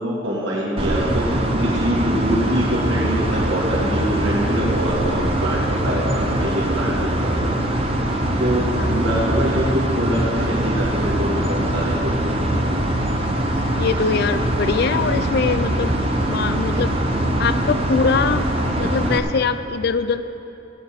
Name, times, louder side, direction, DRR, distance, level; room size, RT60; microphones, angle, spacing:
voice 1, 0.0-7.5 8.4-12.1, equal, 65° right, -6 dB, 2.7 m, -24 dB
sound 1, 0.8-19.2, right 1 dB, 30° right, 0.9 m, -22 dB
voice 2, 8.8-9.1 13.7-16.0 16.2-16.9 17.4-20.2, left 5 dB, 50° left, 11 dB, 0.4 m, -23 dB
16.0 x 9.1 x 4.3 m, 2.9 s
head